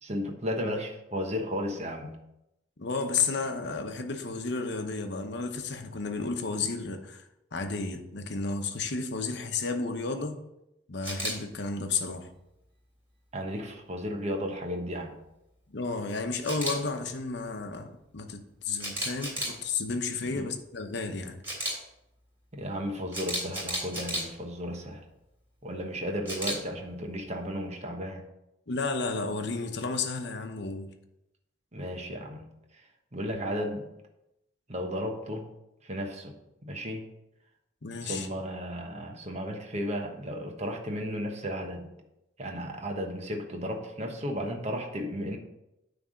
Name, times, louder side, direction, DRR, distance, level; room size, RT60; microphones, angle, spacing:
voice 1, 0.0-2.2 13.3-15.2 20.2-20.4 22.5-25.0 25.6-28.2 31.7-32.5 33.1-33.9 34.7-35.5 35.8-36.3 36.7-37.1 38.0-41.9 42.4-45.4, equal, 35° right, 1.2 m, -34 dB
voice 2, 2.8-7.2 7.5-10.4 10.9-12.3 15.7-21.4 28.7-30.9 37.8-38.3, left 4 dB, 65° left, 0.9 m, -32 dB
Camera, 11.0-11.3 16.4-16.7 18.8-19.5 21.4-21.7 23.1-24.2 26.3-26.6, equal, 10° right, 2.9 m, -32 dB
9.4 x 3.5 x 6.3 m
head